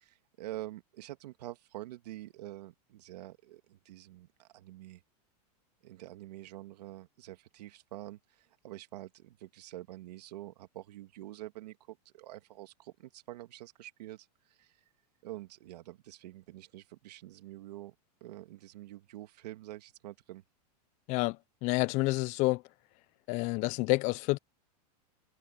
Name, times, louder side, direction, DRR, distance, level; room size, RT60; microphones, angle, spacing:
voice 1, 0.0-5.0 5.8-14.7 15.2-17.9 18.2-20.4, right 15 dB, 75° right, 2.4 m, -47 dB
voice 2, 21.6-22.6 23.3-24.4, left 24 dB, 35° left, 0.4 m, -28 dB
supercardioid pair, 140°, 21 cm